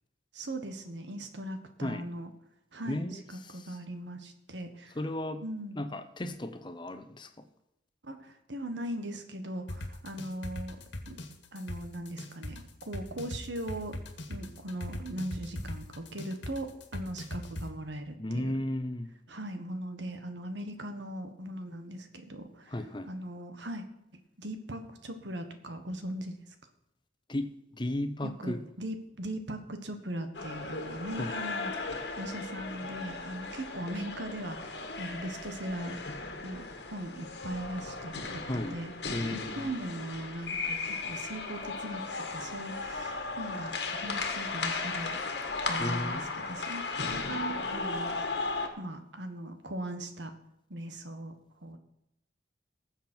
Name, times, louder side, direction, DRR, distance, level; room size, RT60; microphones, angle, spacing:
voice 1, 0.3-2.3 2.7-5.0 5.4-5.8 8.0-10.8 11.1-11.2 11.5-14.0 14.3-18.5 19.3-22.8 23.1-23.9 24.4-26.3 28.2-36.0 36.4-38.9 39.3-45.2 45.7-48.1 48.8-50.3 50.7-51.3 51.6-51.8, right 1 dB, 75° right, 7 dB, 1.5 m, -39 dB
voice 2, 4.9-5.4 5.8-7.4 18.2-19.1 22.7-23.1 27.3-28.6 31.2-31.3 38.4-38.8 39.1-39.7 45.8-46.3, left 1 dB, 25° left, 9 dB, 0.9 m, -34 dB
sound 1, 9.7-17.7, left 1 dB, 85° left, 1.9 m, -39 dB
sound 2, 30.3-48.7, left 3 dB, 65° left, 1.7 m, -36 dB
19.0 x 7.4 x 4.5 m, 0.84 s
head